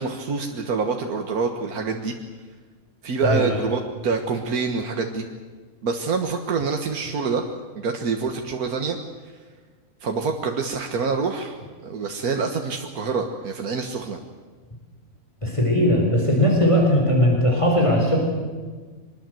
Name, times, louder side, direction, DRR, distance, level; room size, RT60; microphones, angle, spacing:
voice 1, 0.0-2.1 3.0-5.3 5.8-7.4 7.8-9.0 10.0-11.6 11.8-14.2, right 4 dB, 85° right, 4 dB, 1.9 m, -26 dB
voice 2, 3.2-3.6 15.4-18.2, equal, 20° left, 0 dB, 4.3 m, -19 dB
24.0 x 21.0 x 7.8 m, 1.4 s
omnidirectional pair, 1.5 m